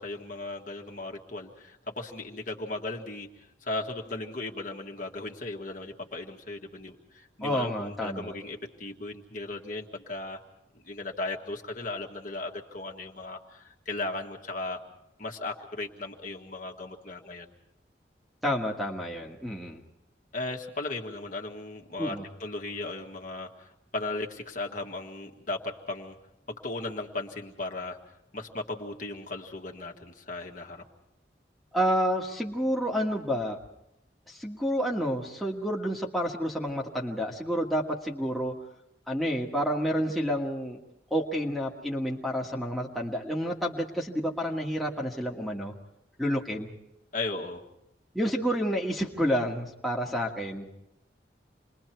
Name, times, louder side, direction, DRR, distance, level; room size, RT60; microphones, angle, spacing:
voice 1, 0.0-3.3 3.6-10.4 10.8-14.8 15.2-17.5 20.3-26.2 26.6-28.0 28.3-30.8 47.1-47.6, left 2 dB, 45° left, 1 dB, 1.8 m, -36 dB
voice 2, 7.4-8.3 18.4-19.8 22.0-22.2 31.7-33.6 34.3-38.5 39.1-40.8 41.1-45.7 46.2-46.7 48.1-50.7, equal, ahead, -3 dB, 1.6 m, -29 dB
28.0 x 22.0 x 4.6 m, 0.83 s
head